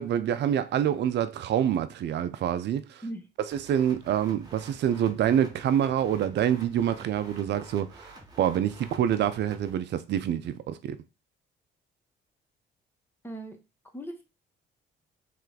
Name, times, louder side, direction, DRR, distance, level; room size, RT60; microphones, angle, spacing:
voice 1, 0.0-3.0 3.7-8.1 8.4-11.0, right 10 dB, 60° right, 0.5 m, -26 dB
sound 1, 3.5-9.7, right 1 dB, 20° right, 1.2 m, -49 dB
voice 2, 13.2-13.6 13.9-14.2, right 1 dB, 10° left, 1.0 m, -38 dB
3.3 x 3.1 x 3.9 m
cardioid pair, 85°, 20 cm